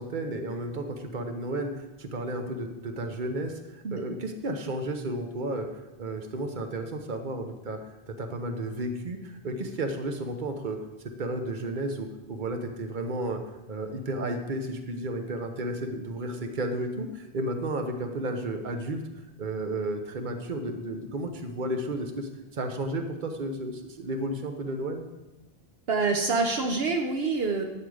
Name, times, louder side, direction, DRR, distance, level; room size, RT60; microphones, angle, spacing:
voice 1, 0.0-5.7 6.0-7.8 8.1-13.4 13.7-19.0 19.4-25.0, right 1 dB, 50° right, 5 dB, 1.2 m, -33 dB
voice 2, 25.9-27.6, right 4 dB, 70° right, 3 dB, 1.1 m, -26 dB
12.0 x 7.9 x 5.0 m, 1.0 s
omnidirectional pair, 1.1 m